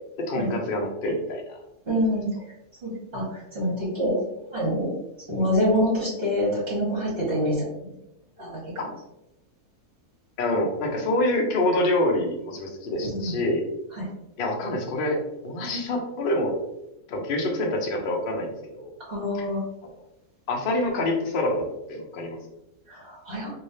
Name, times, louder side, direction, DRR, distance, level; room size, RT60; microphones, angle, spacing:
voice 1, 0.2-1.6 10.4-13.6 14.4-16.6 17.1-18.9 20.5-22.4, left 1 dB, 55° left, 1 dB, 0.6 m, -26 dB
voice 2, 1.9-2.3 2.8-4.2 4.5-4.9 5.3-7.9 8.4-8.8 13.0-13.3 13.9-14.1 19.1-19.6 22.9-23.5, equal, 40° right, -9 dB, 1.5 m, -26 dB
3.2 x 2.7 x 2.7 m, 0.88 s
omnidirectional pair, 1.6 m